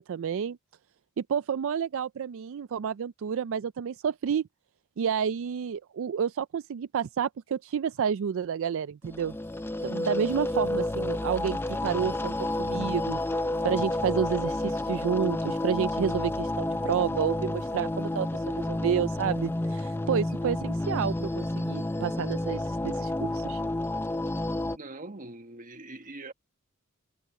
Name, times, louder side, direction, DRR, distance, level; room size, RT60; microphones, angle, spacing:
voice 1, 0.1-0.6 1.2-4.5 5.0-9.4 9.8-13.2 13.6-23.6, right 7 dB, 65° right, 0.4 m, -30 dB
sound 1, 9.0-24.8, left 1 dB, 10° left, 0.5 m, -30 dB
voice 2, 24.7-26.3, right 2 dB, 40° right, 1.5 m, -43 dB
head